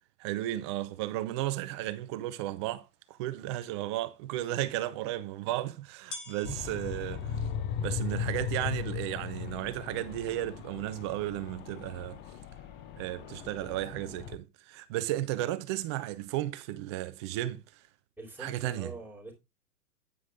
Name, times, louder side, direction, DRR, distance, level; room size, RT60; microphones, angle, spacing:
voice 1, 0.2-7.4 7.8-12.2 13.0-17.6 18.4-18.9, right 15 dB, 20° right, 0.5 m, -34 dB
sound 1, 2.2-2.3 3.0-3.1 4.8-4.9 6.1-11.7, left 3 dB, 55° left, 7.8 m, -51 dB
voice 2, 4.3-4.7 18.2-19.3, right 2 dB, ahead, 3.6 m, -45 dB
sound 2, 6.4-14.4, left 8 dB, 20° left, 0.9 m, -37 dB
9.4 x 9.2 x 3.4 m
figure-of-eight pair, 115°, 47 cm